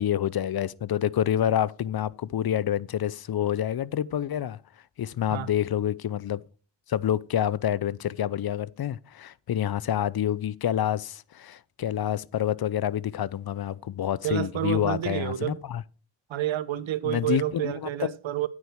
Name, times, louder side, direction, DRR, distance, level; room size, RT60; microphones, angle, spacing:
voice 1, 0.0-4.6 5.0-6.4 6.9-15.8 17.1-17.7, left 10 dB, 55° left, 0.6 m, -27 dB
voice 2, 14.2-15.6 16.3-18.5, right 13 dB, 80° right, 0.9 m, -29 dB
9.4 x 8.4 x 4.6 m
cardioid pair, 65°, 46 cm